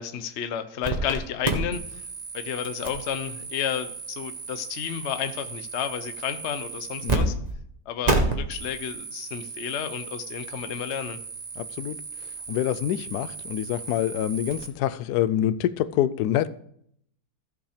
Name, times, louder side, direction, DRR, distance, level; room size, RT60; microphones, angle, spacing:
voice 1, 0.0-2.0 2.3-7.3 7.9-11.2, left 9 dB, 55° left, 0.9 m, -32 dB
sound 1, 0.8-1.2 1.4-7.2 7.4-7.5 8.0-14.7, right 3 dB, 25° right, 1.4 m, -33 dB
voice 2, 7.0-7.3 11.6-12.0 12.5-16.5, left 11 dB, 80° left, 1.1 m, -26 dB
15.0 x 5.5 x 5.0 m
omnidirectional pair, 1.7 m